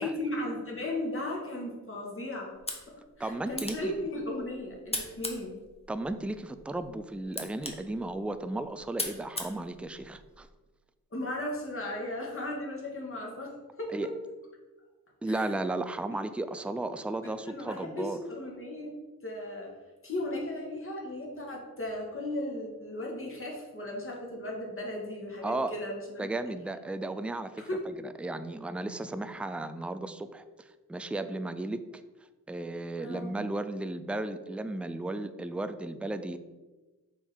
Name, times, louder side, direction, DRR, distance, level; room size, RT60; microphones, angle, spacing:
voice 1, 0.0-2.5 3.2-5.6 11.1-13.9 15.3-15.5 16.1-16.2 17.2-18.9 19.2-19.7 20.0-26.3 27.6-27.8 33.0-33.3, left 1 dB, 35° left, -2 dB, 2.1 m, -36 dB
sound 1, 2.5-10.5, left 2 dB, 15° left, 1.1 m, -41 dB
voice 2, 3.2-3.9 5.9-10.5 13.9-14.1 15.2-18.2 25.4-25.7 26.2-30.4 30.9-31.8 32.5-36.4, right 2 dB, 5° right, 10 dB, 0.4 m, -34 dB
6.4 x 4.0 x 4.5 m, 1.2 s
cardioid pair, 75°, 35 cm